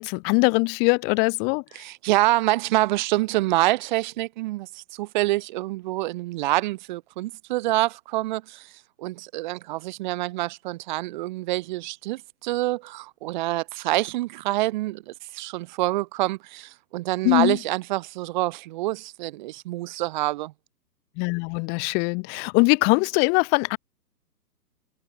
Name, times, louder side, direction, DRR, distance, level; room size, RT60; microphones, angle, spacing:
voice 1, 0.0-1.6 17.2-17.6 21.2-23.8, left 35 dB, 20° left, 4.0 m, -22 dB
voice 2, 1.7-8.7 9.0-20.5, right 18 dB, 30° right, 4.3 m, -26 dB
hypercardioid pair, 160°, 49 cm